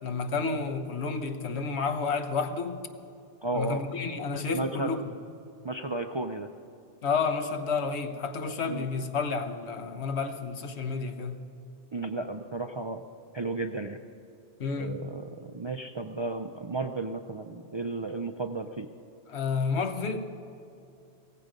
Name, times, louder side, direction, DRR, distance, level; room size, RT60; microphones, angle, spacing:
voice 1, 0.0-2.8 3.5-5.0 7.0-11.4 14.6-15.1 19.3-20.2, left 4 dB, 75° left, 1.2 m, -30 dB
voice 2, 3.4-3.8 4.5-4.9 5.6-6.5 8.7-8.9 11.9-13.0 13.3-14.0 14.8-18.9, right 3 dB, 40° right, 0.4 m, -33 dB
17.0 x 15.0 x 5.2 m
omnidirectional pair, 1.1 m